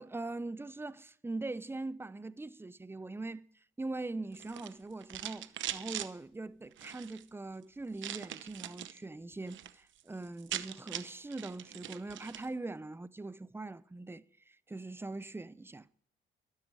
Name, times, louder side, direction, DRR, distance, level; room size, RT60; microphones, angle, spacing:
voice 1, 0.0-3.4 3.8-15.9, right 2 dB, 10° right, 0.6 m, -42 dB
sound 1, 4.3-6.1 6.7-7.2 8.0-9.0 9.3-9.7 10.0-10.1 10.3-12.5, right 12 dB, 75° right, 1.0 m, -42 dB
13.5 x 13.0 x 4.8 m
cardioid pair, 90°, 20 cm